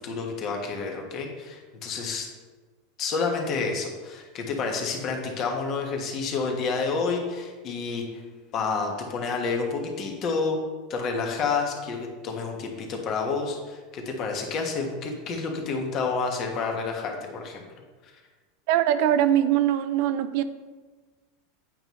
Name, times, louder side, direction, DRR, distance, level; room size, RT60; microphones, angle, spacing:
voice 1, 0.0-2.3 3.0-8.2 8.5-10.6 10.9-17.6, left 4 dB, 40° left, 2 dB, 1.3 m, -29 dB
voice 2, 18.7-20.4, right 11 dB, 65° right, 11 dB, 0.5 m, -22 dB
8.8 x 5.4 x 3.1 m, 1.4 s
supercardioid pair, 130°, 0 cm